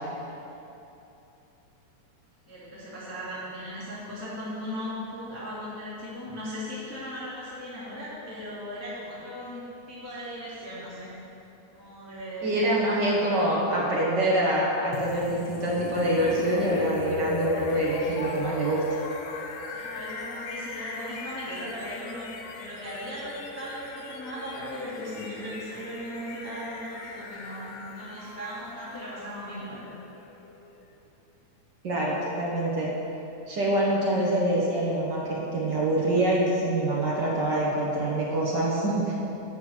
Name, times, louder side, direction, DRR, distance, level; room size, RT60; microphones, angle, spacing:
voice 1, 2.5-11.1 11.7-12.8 19.7-29.8, equal, 5° left, -10 dB, 1.3 m, -38 dB
voice 2, 12.4-18.8 31.8-32.9 33.5-39.1, right 1 dB, 55° right, -5 dB, 1.2 m, -25 dB
sound 1, 14.9-30.8, left 3 dB, 90° left, 2.4 m, -38 dB
7.7 x 6.2 x 7.4 m, 3.0 s
omnidirectional pair, 3.5 m